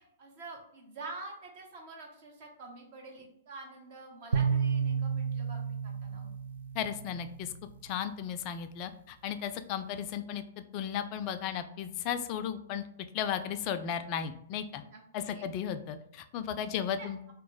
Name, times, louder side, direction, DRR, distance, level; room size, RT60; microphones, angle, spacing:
voice 1, 0.0-6.3 14.7-15.5 16.7-17.1, right 3 dB, 50° right, 0 dB, 1.0 m, -47 dB
sound 1, 4.3-7.6, right 6 dB, 70° right, 0.4 m, -31 dB
voice 2, 6.8-7.5 7.8-10.4 10.7-12.8 13.1-14.8 15.1-17.2, left 8 dB, 40° left, 9 dB, 0.3 m, -35 dB
3.0 x 2.1 x 3.9 m, 0.72 s
hypercardioid pair, 115°, 0 cm